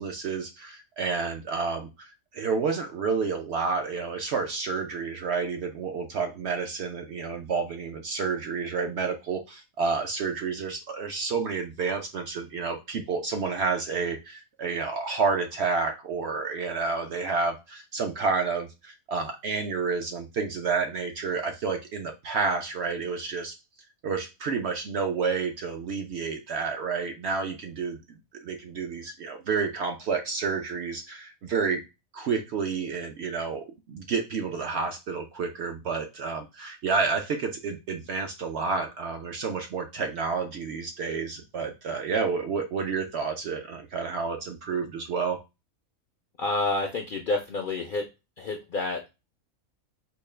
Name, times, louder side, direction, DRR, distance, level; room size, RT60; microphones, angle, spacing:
voice 1, 0.0-23.5 24.0-31.8 32.1-45.4, right 5 dB, 65° right, 4 dB, 0.7 m, -30 dB
voice 2, 46.4-48.1 48.4-49.1, left 3 dB, 65° left, 3 dB, 0.5 m, -29 dB
4.4 x 2.0 x 3.2 m, 0.25 s
omnidirectional pair, 1.5 m